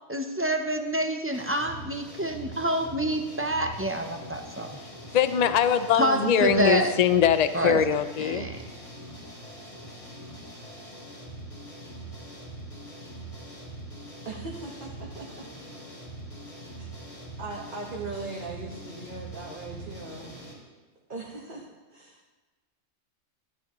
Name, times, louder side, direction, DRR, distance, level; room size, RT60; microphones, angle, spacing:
voice 1, 0.1-4.7 6.0-6.9 7.5-7.8 8.2-8.6, right 1 dB, 15° right, 3 dB, 0.4 m, -27 dB
sound 1, 1.3-20.5, right 1 dB, 35° left, 3.0 m, -43 dB
voice 2, 4.8-8.5, left 8 dB, 60° left, 11 dB, 0.4 m, -23 dB
voice 3, 14.2-15.5 16.8-16.9 17.4-20.5 21.1-22.4, right 3 dB, 40° right, -2 dB, 1.3 m, -39 dB
13.5 x 11.0 x 3.1 m, 1.3 s
omnidirectional pair, 1.4 m